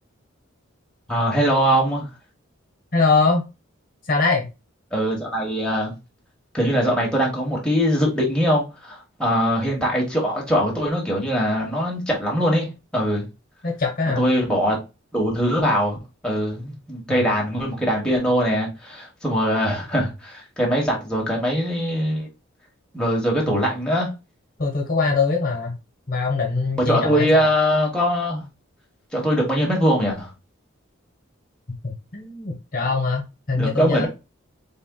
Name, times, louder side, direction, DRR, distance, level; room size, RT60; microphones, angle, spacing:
voice 1, 1.1-2.1 4.9-5.9 6.5-13.3 14.2-14.8 15.1-16.0 16.2-22.3 22.9-24.1 26.8-28.4 29.1-30.3 33.5-34.1, equal, 5° left, 1.2 m, -22 dB
voice 2, 2.9-3.4 4.0-4.5 13.6-14.2 17.1-17.2 23.5-23.6 24.6-25.7 26.1-27.3 31.8-34.1, left 4 dB, 45° left, 1.1 m, -22 dB
4.2 x 3.5 x 2.2 m
head